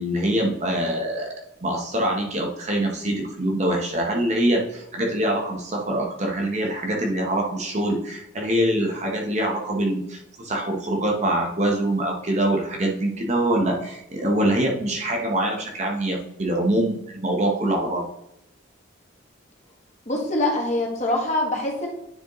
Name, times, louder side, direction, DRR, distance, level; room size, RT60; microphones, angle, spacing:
voice 1, 0.0-1.3 1.6-18.1, right 1 dB, 35° right, 0 dB, 1.0 m, -24 dB
voice 2, 20.1-21.9, left 1 dB, 35° left, -1 dB, 1.6 m, -24 dB
9.7 x 4.9 x 3.1 m, 0.87 s
head